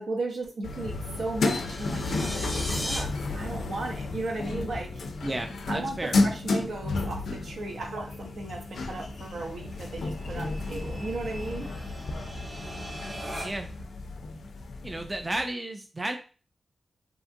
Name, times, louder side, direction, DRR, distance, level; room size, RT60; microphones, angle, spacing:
voice 1, 0.0-5.0 5.7-11.7, right 2 dB, 75° right, 2 dB, 0.7 m, -36 dB
sound 1, 0.6-15.4, left 3 dB, 85° left, 0.3 m, -32 dB
sound 2, 1.4-3.0, equal, 5° right, 0.8 m, -35 dB
sound 3, 4.2-13.8, right 1 dB, 50° right, 0.9 m, -46 dB
voice 2, 5.2-6.2 13.4-13.7 14.8-16.1, right 1 dB, 25° right, 5 dB, 0.3 m, -33 dB
2.8 x 2.3 x 2.5 m, 0.36 s
wide cardioid pair, 90°, 0 cm